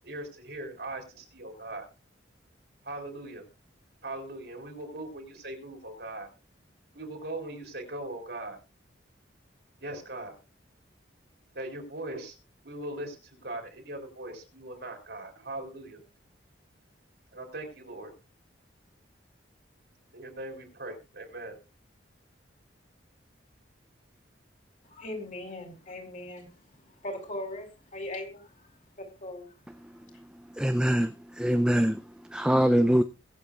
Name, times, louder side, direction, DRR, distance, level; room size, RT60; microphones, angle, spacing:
voice 1, 0.0-1.9 2.8-3.5 4.0-6.3 6.9-8.6 9.8-10.4 11.5-12.3 12.6-16.0 17.3-18.1 20.1-21.5, right 2 dB, 60° right, 4.1 m, -40 dB
voice 2, 24.8-29.6 30.1-30.2, left 1 dB, 40° left, 4.7 m, -40 dB
voice 3, 30.6-31.1 31.4-31.9 32.3-33.0, equal, 5° right, 0.5 m, -23 dB
23.0 x 8.6 x 2.4 m
head